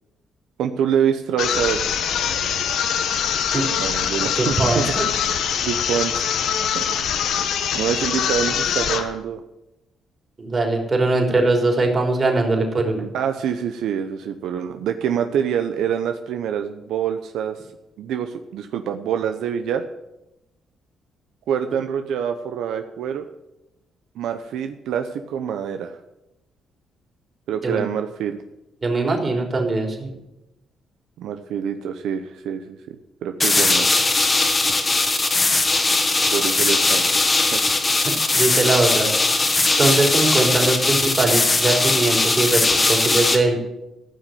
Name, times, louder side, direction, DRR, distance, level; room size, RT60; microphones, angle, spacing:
voice 1, 0.6-1.8 3.8-4.9 5.2-5.3 5.6-6.3 6.6-6.9 7.7-9.4 13.1-17.7 18.0-19.8 21.5-23.3 24.2-26.0 27.5-28.4 31.2-33.9 36.3-37.6, right 8 dB, 80° right, 7 dB, 0.7 m, -26 dB
sound 1, 1.4-9.1, left 8 dB, 80° left, 1.3 m, -23 dB
voice 2, 4.4-5.1 10.4-13.0 27.6-27.8 28.8-30.1 38.3-39.1 39.8-43.6, right 2 dB, 30° right, 2 dB, 3.7 m, -21 dB
sound 2, 33.4-43.4, left 3 dB, 25° left, 1.8 m, -19 dB
14.0 x 6.2 x 9.2 m, 0.92 s
cardioid pair, 90°, 0 cm